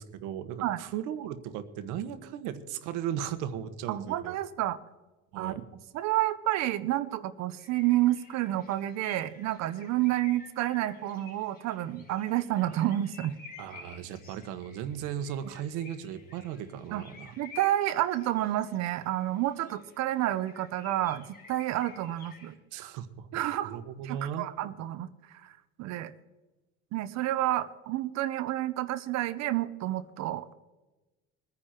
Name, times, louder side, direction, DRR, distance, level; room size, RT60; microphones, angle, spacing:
voice 1, 0.0-4.4 5.3-5.6 13.6-17.3 22.7-23.3 23.6-24.5, right 9 dB, 85° right, 10 dB, 1.5 m, -36 dB
voice 2, 3.9-4.8 5.4-5.5 5.9-13.4 16.9-17.0 17.4-22.6 23.3-25.1 25.4-26.1 26.9-30.5, right 14 dB, 60° right, 12 dB, 0.9 m, -30 dB
sound 1, 7.6-22.5, left 4 dB, 30° left, 3.8 m, -52 dB
22.0 x 9.9 x 4.5 m, 1.1 s
cardioid pair, 140°, 30 cm